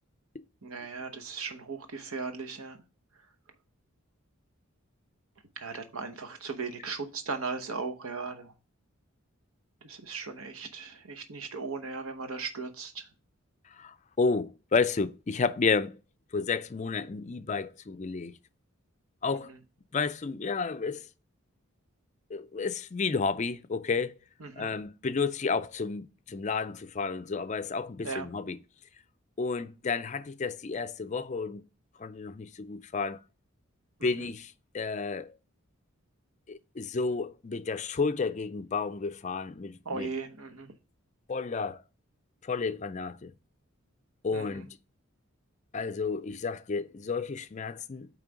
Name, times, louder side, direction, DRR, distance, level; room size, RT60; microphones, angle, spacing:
voice 1, 0.6-2.8 5.6-8.5 9.8-13.0 24.4-24.7 28.0-28.3 34.0-34.1 39.8-40.7 44.3-44.6, right 4 dB, 75° right, 1.0 m, -37 dB
voice 2, 13.7-16.0 16.3-18.4 19.2-19.5 19.9-21.1 22.3-24.1 24.6-28.6 29.4-31.6 32.0-33.2 34.0-35.3 36.5-40.1 41.3-41.8 42.4-43.3 44.2-44.8 45.7-48.1, left 4 dB, 35° left, 0.4 m, -31 dB
8.8 x 3.2 x 4.9 m
head